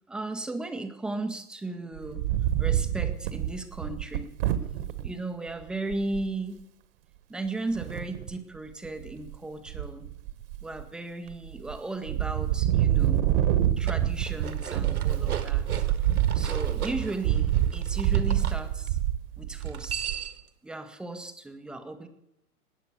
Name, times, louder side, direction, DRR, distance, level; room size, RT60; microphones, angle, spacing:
voice 1, 0.1-2.2 2.6-4.3 5.0-6.6 7.3-10.1 10.6-13.3 13.8-15.8 16.3-19.0 19.4-20.1 20.6-22.1, right 2 dB, ahead, 7 dB, 0.5 m, -36 dB
Wind, 2.0-5.1 5.6-5.7 5.9-6.3 7.7-8.3 8.9-9.4 9.7-10.8 11.3-11.8 12.1-20.3, right 12 dB, 40° right, 1.2 m, -27 dB
sound 1, 13.6-18.6 19.6-20.5, right 8 dB, 75° right, 2.0 m, -38 dB
19.5 x 9.0 x 6.9 m, 0.87 s
figure-of-eight pair, 125°, 45 cm